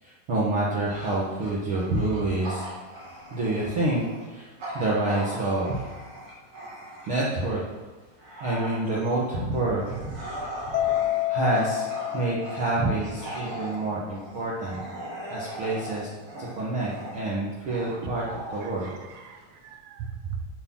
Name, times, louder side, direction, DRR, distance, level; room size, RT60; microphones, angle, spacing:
voice 1, 0.0-2.7 3.3-5.9 7.1-7.6 8.4-9.8 10.2-10.5 11.2-11.9 12.1-14.8 15.3-16.1 16.4-18.9, right 2 dB, 60° right, -6 dB, 1.3 m, -27 dB
Bark / Growling, 0.9-7.4 7.9-19.7, right 1 dB, 35° right, 2.9 m, -39 dB
Mallet percussion, 10.7-13.2, left 14 dB, 80° left, 2.4 m, -28 dB
voice 2, 15.3-15.6 18.0-18.1 18.6-20.4, right 7 dB, 80° right, 6 dB, 1.9 m, -39 dB
8.8 x 7.7 x 6.1 m, 1.3 s
omnidirectional pair, 4.5 m